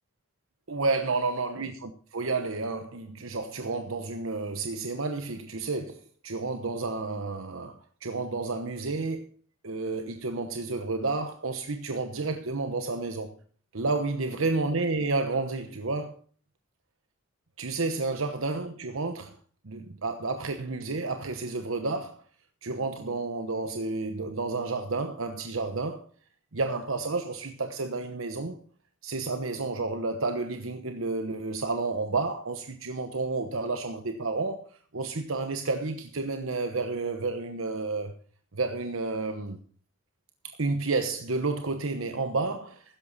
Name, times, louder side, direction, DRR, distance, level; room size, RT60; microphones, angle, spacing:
voice 1, 0.7-9.3 9.6-13.3 13.7-16.2 17.6-19.4 19.6-22.2 22.6-26.0 26.5-28.6 29.0-34.6 34.9-38.1 38.5-39.6 40.4-43.0, right 3 dB, 90° right, 1.1 m, -31 dB
13.5 x 10.0 x 4.1 m
head